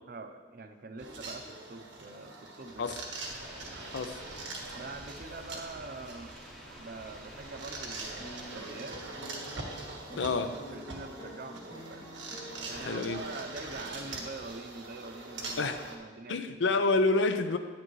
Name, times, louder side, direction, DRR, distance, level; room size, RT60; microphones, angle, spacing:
voice 1, 0.1-3.2 4.7-6.4 6.7-9.1 10.1-10.3 10.7-12.1 12.6-16.8, right 3 dB, 50° right, 8 dB, 0.6 m, -44 dB
sound 1, 1.0-16.0, right 3 dB, 90° right, 1.3 m, -43 dB
sound 2, 3.2-8.6, equal, ahead, 0.7 m, -51 dB
sound 3, 8.2-13.2, equal, 20° left, 1.2 m, -48 dB
voice 2, 10.2-10.5 12.8-13.2 15.6-15.8 16.3-17.6, left 3 dB, 75° left, 8 dB, 0.5 m, -28 dB
10.0 x 8.7 x 3.2 m, 1.4 s
head